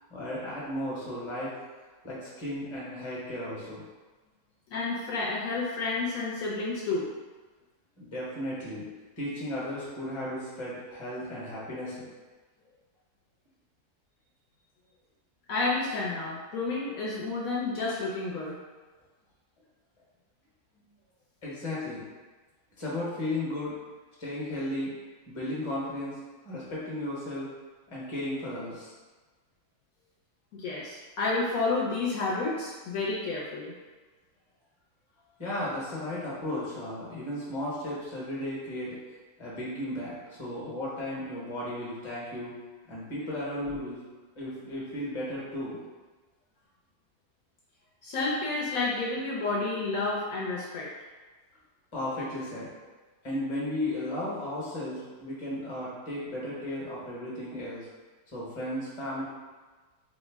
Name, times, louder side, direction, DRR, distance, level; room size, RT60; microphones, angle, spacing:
voice 1, 0.0-1.5 2.0-3.8 8.0-8.9 9.2-12.0 21.4-22.0 22.8-23.8 24.2-24.9 25.3-26.2 26.4-27.5 27.9-28.9 35.4-39.0 39.4-42.5 42.9-44.0 44.4-45.8 51.9-52.7 53.2-57.9 58.3-59.2, left 1 dB, 25° left, -7 dB, 0.8 m, -35 dB
voice 2, 4.7-7.1 15.5-18.6 30.5-33.7 48.0-50.9, left 3 dB, 70° left, -5 dB, 1.0 m, -30 dB
3.7 x 2.0 x 3.3 m, 1.3 s
omnidirectional pair, 1.7 m